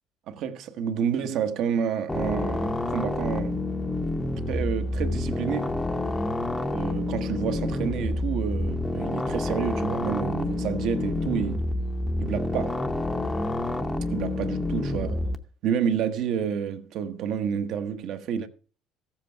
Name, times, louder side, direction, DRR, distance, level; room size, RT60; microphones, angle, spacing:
voice 1, 0.3-3.6 4.5-5.8 6.7-11.6 12.2-12.8 14.1-15.3 15.6-18.5, right 8 dB, 50° right, 1.0 m, -29 dB
sound 1, 2.1-15.4, left 2 dB, 10° left, 0.7 m, -28 dB
14.5 x 7.6 x 4.4 m
cardioid pair, 170°, 0 cm